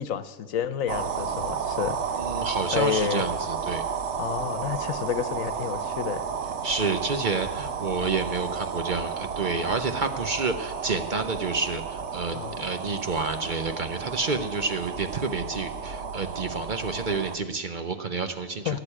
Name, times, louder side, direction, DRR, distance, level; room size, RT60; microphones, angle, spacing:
voice 1, 0.0-2.0 2.7-3.2 4.2-6.2 12.3-12.7 18.6-18.8, left 9 dB, 80° left, 13 dB, 1.2 m, -30 dB
sound 1, 0.9-17.4, right 6 dB, 60° right, 1.2 m, -32 dB
voice 2, 2.2-3.8 6.6-18.8, right 4 dB, 40° right, 8 dB, 0.9 m, -29 dB
17.0 x 7.0 x 9.9 m, 1.3 s
omnidirectional pair, 1.4 m